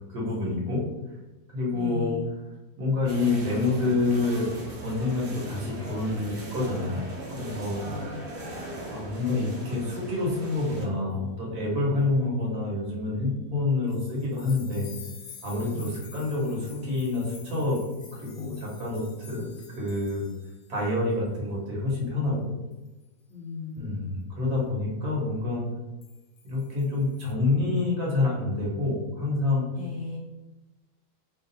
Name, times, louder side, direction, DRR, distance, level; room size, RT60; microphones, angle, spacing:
voice 1, 0.1-0.8 1.5-2.1 2.8-4.5 4.8-7.0 7.3-7.8 8.9-14.9 15.4-17.8 18.2-20.3 20.7-22.5 23.8-25.6 26.4-29.6, left 2 dB, 75° right, -3 dB, 1.5 m, -27 dB
voice 2, 1.7-2.3 7.6-8.2 15.7-15.9 23.3-23.9 29.7-30.2, left 4 dB, 15° left, -8 dB, 1.1 m, -38 dB
sound 1, 3.0-10.8, right 1 dB, 50° right, 0.8 m, -39 dB
sound 2, 13.9-20.8 21.1-21.3 22.7-23.0 26.0-27.3, left 6 dB, 70° left, 1.0 m, -49 dB
3.0 x 2.3 x 3.9 m, 1.1 s
omnidirectional pair, 1.7 m